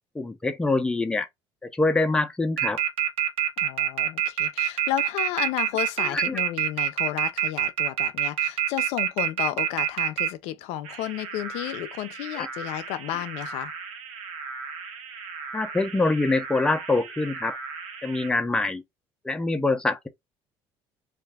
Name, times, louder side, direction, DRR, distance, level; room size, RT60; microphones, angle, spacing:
voice 1, 0.2-1.3 1.6-2.8 6.0-6.4 12.4-12.5 15.5-17.6 18.0-18.8 19.2-20.1, left 2 dB, 10° left, 0.4 m, -25 dB
sound 1, 2.6-10.3 10.9-18.3, right 10 dB, 70° right, 0.9 m, -28 dB
voice 2, 3.6-13.7, left 13 dB, 85° left, 0.4 m, -32 dB
2.5 x 2.3 x 3.3 m
cardioid pair, 125°, 11 cm